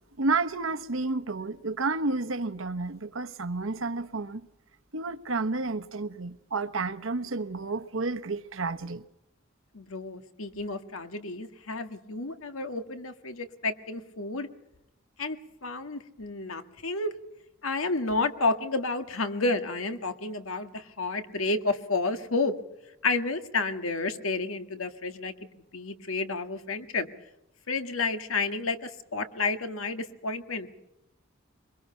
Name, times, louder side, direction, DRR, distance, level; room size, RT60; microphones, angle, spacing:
voice 1, 0.2-4.5 4.9-9.0, right 3 dB, 70° right, 1.1 m, -31 dB
voice 2, 9.7-14.5 15.2-17.1 17.6-22.5 23.0-25.3 25.7-27.1 27.7-30.7, left 3 dB, 80° left, 1.7 m, -30 dB
23.5 x 22.0 x 5.7 m
head